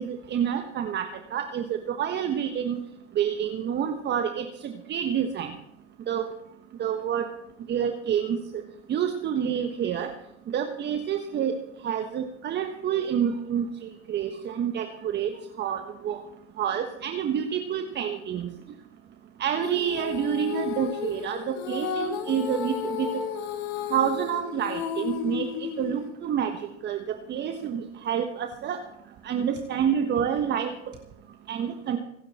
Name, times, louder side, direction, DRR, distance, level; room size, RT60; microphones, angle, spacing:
voice 1, 0.0-2.8 3.1-5.5 6.1-6.3 6.8-7.3 7.7-8.6 8.9-10.1 10.5-11.5 11.8-13.6 14.1-15.3 15.6-16.2 16.6-18.5 19.4-23.1 23.9-26.5 26.8-28.8 29.2-30.7 31.5-32.0, right 8 dB, 30° right, 5 dB, 1.4 m, -28 dB
Female singing, 19.6-26.1, left 8 dB, 50° left, 2.2 m, -33 dB
27.5 x 9.8 x 4.3 m, 0.79 s
hypercardioid pair, 100°, 36 cm